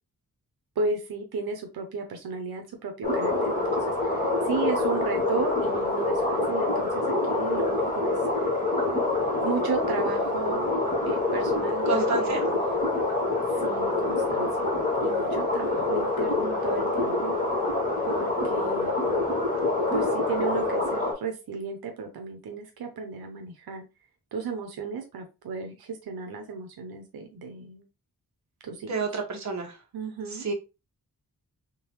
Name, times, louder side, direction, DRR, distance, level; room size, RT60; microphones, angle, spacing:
voice 1, 0.8-8.6 9.4-10.7 11.1-12.6 13.5-14.7 15.0-17.5 18.0-19.1 19.9-23.8 24.3-27.8 28.6-29.0 29.9-30.5, right 4 dB, 90° right, 4 dB, 0.8 m, -34 dB
sound 1, 3.0-21.1, left 2 dB, 25° left, 2.0 m, -26 dB
voice 2, 11.9-12.4 28.9-29.7 30.4-30.5, right 3 dB, 50° right, 1 dB, 1.2 m, -28 dB
3.8 x 3.5 x 2.9 m, 0.29 s
wide cardioid pair, 100°, 36 cm